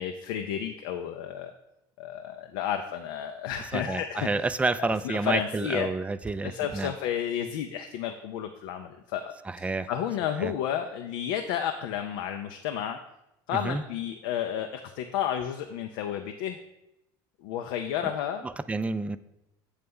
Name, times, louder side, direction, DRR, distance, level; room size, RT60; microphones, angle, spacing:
voice 1, 0.0-1.5 2.0-4.3 4.8-5.9 6.4-13.0 13.5-16.6 17.4-18.5, left 9 dB, 80° left, 5 dB, 0.5 m, -32 dB
voice 2, 3.7-6.9 9.5-9.9 10.4-10.5 13.5-13.8 18.4-19.2, right 3 dB, 10° right, 13 dB, 0.3 m, -29 dB
8.0 x 3.3 x 5.3 m, 0.89 s
supercardioid pair, 95°, 11 cm